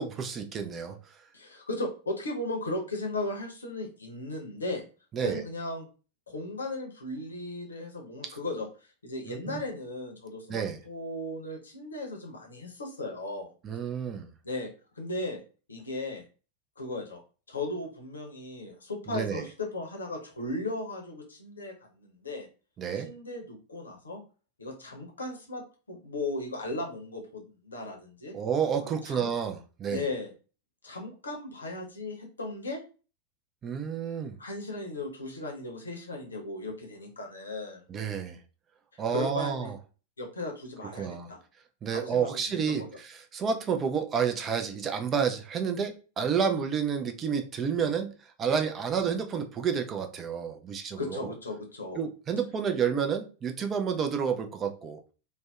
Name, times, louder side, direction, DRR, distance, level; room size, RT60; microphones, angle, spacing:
voice 1, 0.0-1.2 5.1-5.4 9.3-9.6 10.5-10.8 13.6-14.3 19.1-19.4 22.8-23.1 28.3-30.0 33.6-34.4 37.9-38.4 39.0-39.7 41.0-41.3 41.8-51.3 52.0-55.0, right 7 dB, 25° right, 0.4 m, -30 dB
voice 2, 1.3-4.8 5.2-5.9 6.3-13.5 14.4-14.7 14.9-15.4 15.7-16.2 16.8-17.2 17.5-22.5 23.0-24.2 24.6-28.3 28.8-29.3 29.9-30.3 30.8-32.8 34.4-37.8 38.9-39.7 40.2-41.4 41.9-42.4 42.7-42.9 51.0-52.0, left 2 dB, 75° left, 0.7 m, -36 dB
2.5 x 2.1 x 2.3 m
figure-of-eight pair, 90°, 0 cm